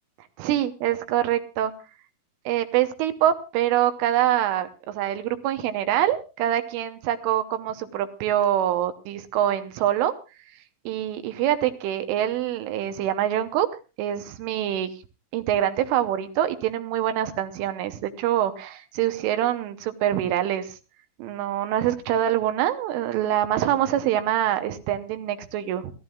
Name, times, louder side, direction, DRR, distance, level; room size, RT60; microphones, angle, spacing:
voice 1, 0.4-1.7 2.5-10.1 10.9-13.7 14.0-14.9 15.3-20.8 21.2-25.9, right 11 dB, 80° right, 9 dB, 3.3 m, -25 dB
28.0 x 12.5 x 2.3 m, 0.32 s
omnidirectional pair, 5.8 m